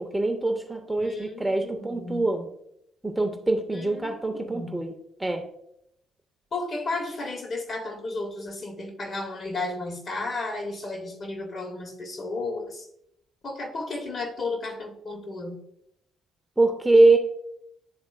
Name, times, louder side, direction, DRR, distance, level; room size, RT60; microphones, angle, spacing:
voice 1, 0.0-2.5 3.0-4.9 5.2-5.4 16.6-17.2, right 2 dB, 10° right, 5 dB, 0.7 m, -23 dB
voice 2, 1.0-2.3 3.7-4.9 6.5-12.9 13.4-15.6, left 2 dB, 40° left, 4 dB, 1.3 m, -33 dB
11.0 x 3.7 x 2.5 m, 0.74 s
figure-of-eight pair, 45°, 0 cm